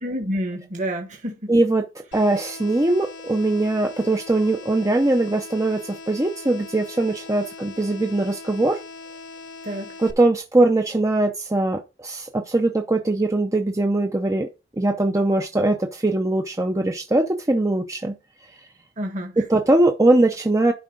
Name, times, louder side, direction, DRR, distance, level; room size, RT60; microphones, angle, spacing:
voice 1, 0.0-1.5 9.6-9.9 19.0-19.4, equal, 40° right, 1.5 m, -29 dB
voice 2, 1.5-1.8 2.1-8.8 10.0-14.5 14.8-18.1 19.4-20.7, right 2 dB, 15° right, 0.6 m, -21 dB
sound 1, 2.1-10.1, left 4 dB, 65° left, 1.2 m, -40 dB
11.0 x 4.8 x 3.8 m
head